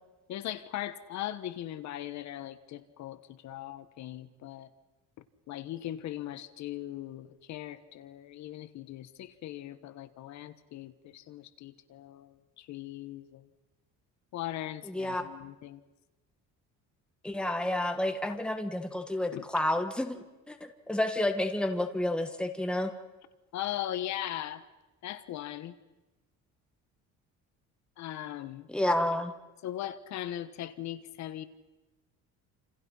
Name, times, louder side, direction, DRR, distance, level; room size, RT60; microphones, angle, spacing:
voice 1, 0.3-4.7 5.5-13.5 14.3-15.8 18.3-18.4 19.3-19.4 23.5-24.6 25.0-25.7 28.0-28.7 29.6-31.4, left 13 dB, 65° left, 12 dB, 1.4 m, -39 dB
voice 2, 14.8-15.2 17.2-22.9 28.7-29.3, left 1 dB, 5° left, 5 dB, 1.7 m, -30 dB
28.5 x 28.0 x 5.7 m, 1.1 s
cardioid pair, 155°, 31 cm